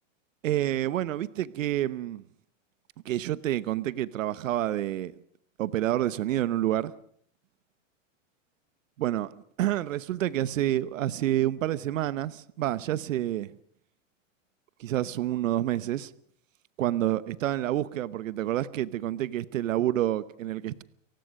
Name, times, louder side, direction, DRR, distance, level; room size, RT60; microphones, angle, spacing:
voice 1, 0.4-2.2 3.0-5.2 5.6-6.9 9.0-9.3 9.6-13.5 14.8-16.1 16.8-20.8, right 13 dB, 85° right, 1.0 m, -28 dB
29.5 x 16.0 x 6.5 m
supercardioid pair, 160°, 38 cm